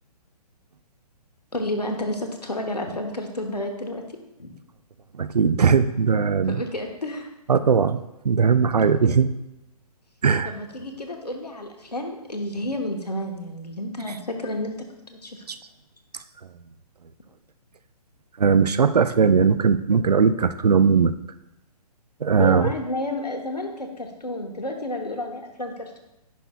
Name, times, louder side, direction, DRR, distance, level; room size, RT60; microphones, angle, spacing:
voice 1, 1.5-4.0 4.4-4.5 6.5-7.3 10.4-15.4 22.4-26.0, left 1 dB, 85° left, 3 dB, 1.2 m, -31 dB
voice 2, 5.2-6.7 7.5-9.3 10.2-10.5 14.1-14.2 15.5-15.6 18.4-21.1 22.2-22.7, right 6 dB, 75° right, 12 dB, 0.5 m, -19 dB
10.0 x 5.5 x 2.4 m, 0.90 s
figure-of-eight pair, 130°, 20 cm